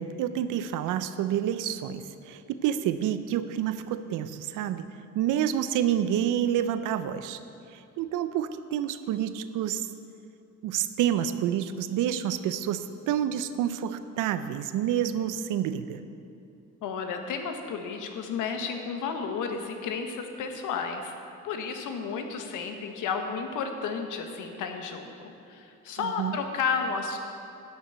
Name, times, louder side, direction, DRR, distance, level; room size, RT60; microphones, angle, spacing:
voice 1, 0.0-4.8 5.1-7.4 7.7-9.9 10.6-16.0 26.0-26.3, right 10 dB, 90° right, 12 dB, 0.6 m, -28 dB
voice 2, 16.8-21.1 21.4-27.2, left 5 dB, 85° left, 5 dB, 1.2 m, -32 dB
12.0 x 5.9 x 8.1 m, 2.6 s
cardioid pair, 90°, 30 cm